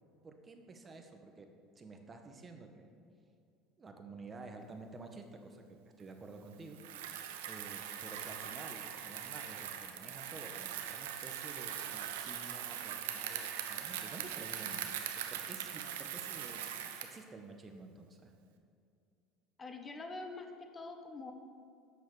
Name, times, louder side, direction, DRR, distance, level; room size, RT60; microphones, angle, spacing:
voice 1, 0.2-1.5 1.8-2.9 3.8-6.8 7.4-18.3, right 3 dB, 30° right, 5 dB, 1.1 m, -51 dB
Bicycle, 6.7-17.2, right 9 dB, 85° right, 0.7 m, -41 dB
voice 2, 19.6-21.3, left 3 dB, 25° left, 5 dB, 1.0 m, -45 dB
8.2 x 6.4 x 4.8 m, 2.5 s
supercardioid pair, 90°, 0 cm